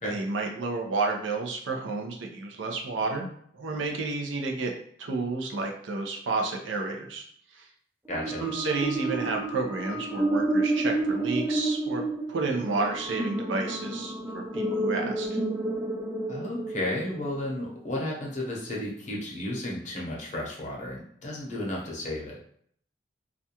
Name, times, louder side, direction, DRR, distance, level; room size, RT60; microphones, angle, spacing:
voice 1, 0.0-4.7 5.0-7.2 7.5-7.7 8.4-12.0 12.3-15.4, right 3 dB, 85° right, 1 dB, 0.5 m, -31 dB
voice 2, 8.1-8.4 16.3-22.4, left 1 dB, 40° left, -2 dB, 0.7 m, -33 dB
sound 1, 8.1-17.5, right 2 dB, 10° right, 0.3 m, -30 dB
2.4 x 2.2 x 2.8 m, 0.63 s
head